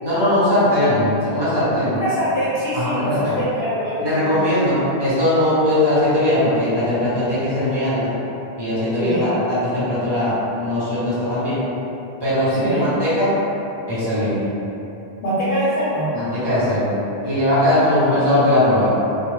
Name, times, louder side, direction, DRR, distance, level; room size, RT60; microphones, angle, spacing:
voice 1, 0.0-2.0 2.7-3.4 4.0-8.1 8.6-11.6 12.2-13.3 13.9-14.4 16.1-16.9 17.2-19.0, left 1 dB, 25° right, -13 dB, 1.1 m, -19 dB
voice 2, 1.9-4.3 9.0-9.3 12.6-12.9 15.2-16.1 17.8-18.4, equal, 60° left, -11 dB, 0.9 m, -24 dB
2.5 x 2.4 x 3.2 m, 2.9 s
omnidirectional pair, 1.1 m